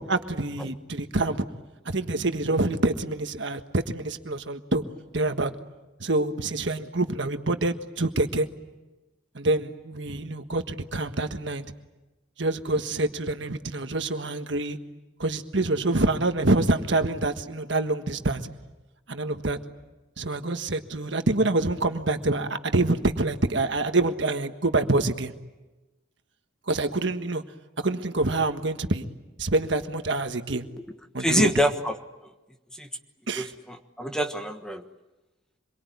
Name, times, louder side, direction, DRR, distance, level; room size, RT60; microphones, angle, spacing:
voice 1, 0.0-1.4 1.8-4.8 5.1-5.5 6.0-8.5 9.3-11.6 12.4-14.8 15.2-18.4 19.1-19.6 20.2-25.3 26.7-27.4 27.8-29.0 29.4-30.6 31.1-31.5 33.3-33.5, right 2 dB, 60° right, 7 dB, 1.5 m, -26 dB
voice 2, 31.2-31.9 32.8-32.9 33.4-34.8, equal, 5° left, 5 dB, 1.3 m, -26 dB
26.5 x 23.0 x 9.6 m, 1.1 s
head